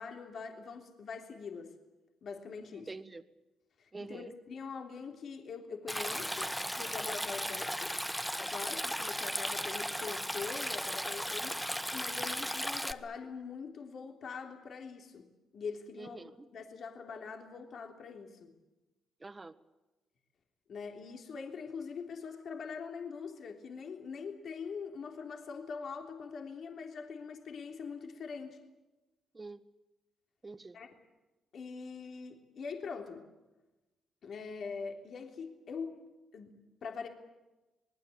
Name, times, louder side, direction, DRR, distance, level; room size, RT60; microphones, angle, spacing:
voice 1, 0.0-1.7 2.2-2.9 3.8-8.0 8.4-11.6 11.9-15.3 15.5-16.2 16.5-18.5 20.7-28.6 30.7-30.9 31.5-33.3 34.2-35.9 36.3-37.1, left 5 dB, 60° left, 3 dB, 3.3 m, -43 dB
voice 2, 2.7-3.2 3.9-4.3 16.0-16.5 19.2-19.5 29.3-29.6 30.4-30.8, right 3 dB, 25° right, 11 dB, 1.6 m, -46 dB
Stream, 5.9-12.9, equal, ahead, 1.1 m, -36 dB
26.0 x 20.5 x 8.6 m, 1.1 s
cardioid pair, 90°, 0 cm